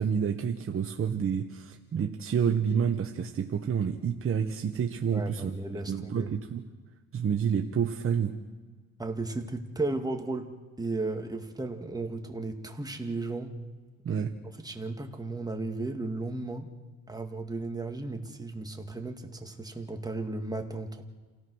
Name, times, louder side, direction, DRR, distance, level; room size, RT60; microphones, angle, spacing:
voice 1, 0.0-5.6 5.9-6.6 7.1-8.3 14.0-14.3, right 7 dB, 45° right, 5 dB, 1.2 m, -29 dB
voice 2, 5.1-6.3 9.0-10.5 10.8-13.6 14.1-14.2 14.6-16.7 17.1-21.0, right 2 dB, 10° right, 4 dB, 2.1 m, -35 dB
28.0 x 17.0 x 6.4 m, 1.4 s
cardioid pair, 90°, 30 cm